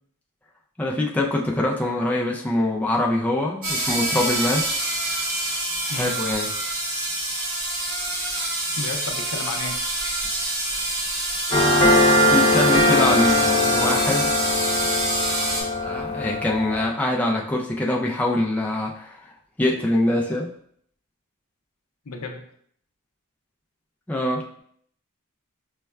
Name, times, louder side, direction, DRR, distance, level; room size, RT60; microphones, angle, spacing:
voice 1, 0.8-4.8 5.8-6.5 12.3-14.3 15.8-19.3 19.6-20.5 24.1-24.5, left 1 dB, 5° left, -2 dB, 0.3 m, -24 dB
sound 1, 3.6-15.6, right 2 dB, 75° right, 1.1 m, -27 dB
voice 2, 8.8-9.8 22.1-22.4, left 3 dB, 70° left, 4 dB, 0.5 m, -32 dB
sound 2, 11.5-16.9, left 1 dB, 25° left, 0.8 m, -20 dB
5.3 x 2.2 x 2.3 m, 0.64 s
head